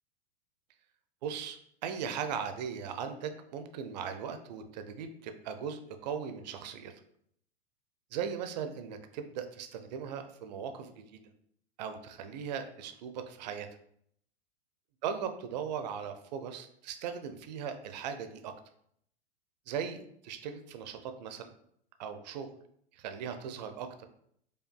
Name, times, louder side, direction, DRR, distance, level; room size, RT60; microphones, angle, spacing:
voice 1, 1.2-6.9 8.1-11.2 11.8-13.7 15.0-18.5 19.7-21.5 22.0-22.5 22.9-24.0, right 7 dB, 40° right, 7 dB, 0.4 m, -38 dB
5.0 x 2.3 x 2.2 m, 0.69 s
figure-of-eight pair, 95°, 33 cm